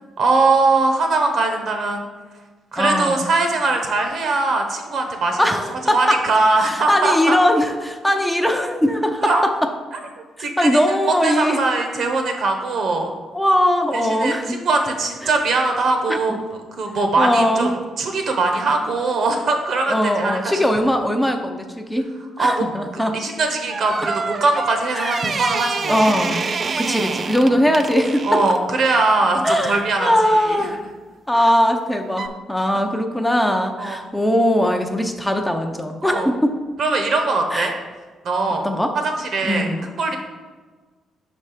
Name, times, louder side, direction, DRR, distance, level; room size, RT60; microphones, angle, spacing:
voice 1, 0.2-2.0 2.7-5.4 5.8-7.4 9.2-9.4 10.4-10.7 11.2-13.1 13.9-16.4 16.8-17.7 18.0-20.6 22.4-22.6 22.9-26.1 28.2-30.6 33.8-34.0 36.0-36.3 36.8-37.7 38.2-38.7 39.0-39.7 40.0-40.2, right 3 dB, 65° right, 4 dB, 1.0 m, -21 dB
voice 2, 2.8-3.3 5.4-6.2 6.6-9.7 10.4-11.6 13.3-14.5 16.1-16.4 17.2-17.8 19.9-22.1 22.4-23.2 24.9-25.2 25.9-28.4 29.4-30.8 31.3-36.6 37.5-37.7 38.6-38.9 39.4-39.9, equal, 5° left, 4 dB, 0.5 m, -20 dB
sound 1, 23.4-28.6 31.3-31.6 32.1-32.3, right 5 dB, 40° right, 0.3 m, -27 dB
5.2 x 4.3 x 4.9 m, 1.4 s
cardioid pair, 90°, 0 cm